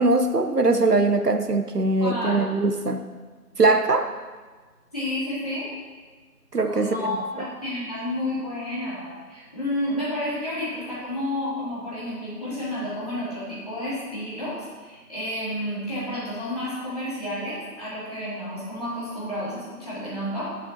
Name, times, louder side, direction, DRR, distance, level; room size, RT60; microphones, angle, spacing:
voice 1, 0.0-3.0 3.6-4.1 6.5-7.0, right 3 dB, 75° right, 7 dB, 1.1 m, -21 dB
voice 2, 2.0-2.4 4.9-5.7 6.7-20.5, left 1 dB, 25° left, -11 dB, 3.5 m, -30 dB
21.0 x 7.6 x 3.1 m, 1.4 s
figure-of-eight pair, 175°, 48 cm